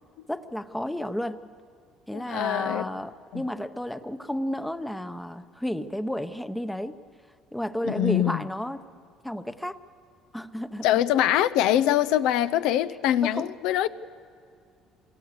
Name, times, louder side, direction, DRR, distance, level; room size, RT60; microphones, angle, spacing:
voice 1, 0.3-1.4 2.1-7.0 7.5-8.8 9.2-9.8 10.3-10.9 13.2-13.5, equal, 5° left, 0.8 m, -32 dB
voice 2, 2.1-2.9 3.3-3.4 7.8-8.4 10.8-13.9, left 12 dB, 80° left, 0.7 m, -23 dB
27.5 x 24.0 x 6.7 m
cardioid pair, 130°, 0 cm